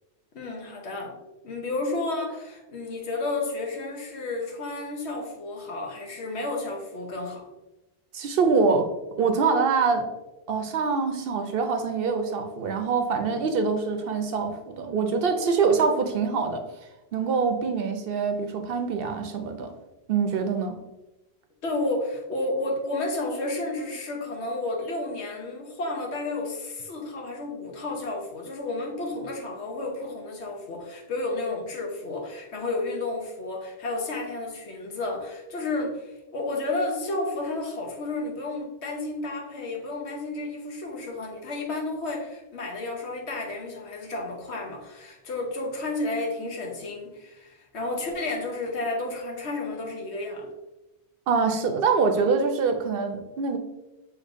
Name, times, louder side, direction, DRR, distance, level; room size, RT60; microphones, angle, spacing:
voice 1, 0.3-1.2 1.4-7.5 21.6-50.5, left 2 dB, 85° left, 1 dB, 1.2 m, -31 dB
voice 2, 8.1-8.9 9.2-10.1 10.5-16.6 17.1-19.7 20.1-20.8 51.3-53.6, right 5 dB, 65° right, 5 dB, 0.7 m, -24 dB
6.5 x 3.0 x 2.5 m, 1.0 s
omnidirectional pair, 1.1 m